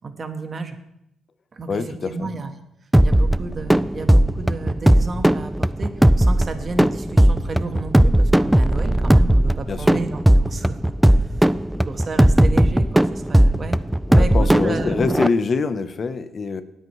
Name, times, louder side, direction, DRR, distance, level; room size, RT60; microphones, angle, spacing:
voice 1, 0.0-0.8 1.5-2.5 3.0-10.2 10.5-11.5 11.8-13.8 14.1-15.0, right 3 dB, 40° right, 7 dB, 1.4 m, -32 dB
voice 2, 1.7-2.3 9.7-10.0 14.1-16.6, left 4 dB, 45° left, 11 dB, 0.9 m, -25 dB
sound 1, 2.9-15.3, right 1 dB, 5° right, 0.3 m, -17 dB
19.0 x 8.0 x 3.3 m, 0.81 s
cardioid pair, 90°, 0 cm